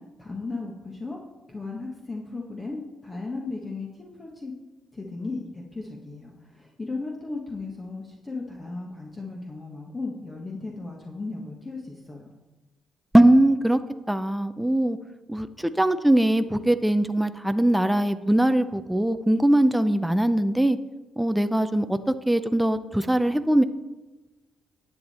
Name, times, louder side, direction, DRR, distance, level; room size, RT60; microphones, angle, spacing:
voice 1, 0.2-1.2 1.5-4.5 4.9-12.3, left 3 dB, 25° left, -1 dB, 1.4 m, -36 dB
voice 2, 13.1-13.8 14.1-15.0 15.3-20.8 21.2-23.6, right 1 dB, 5° right, 10 dB, 0.5 m, -21 dB
10.5 x 8.5 x 4.3 m, 1.1 s
cardioid pair, 90°, 0 cm